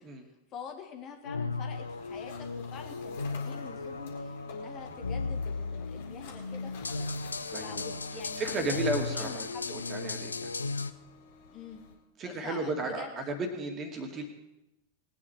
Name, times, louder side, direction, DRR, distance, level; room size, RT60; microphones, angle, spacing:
voice 1, 0.5-7.2 7.6-10.2 11.5-11.9 12.2-13.1, left 7 dB, 35° left, 4 dB, 1.7 m, -46 dB
sound 1, 1.3-10.9, left 3 dB, 75° left, 0.5 m, -36 dB
sound 2, 1.7-12.0, left 6 dB, 55° left, 2.6 m, -51 dB
voice 2, 7.5-7.9 8.4-10.5 12.2-14.2, right 2 dB, 30° right, 4 dB, 2.2 m, -34 dB
19.5 x 9.1 x 4.6 m, 0.95 s
figure-of-eight pair, 90°, 0 cm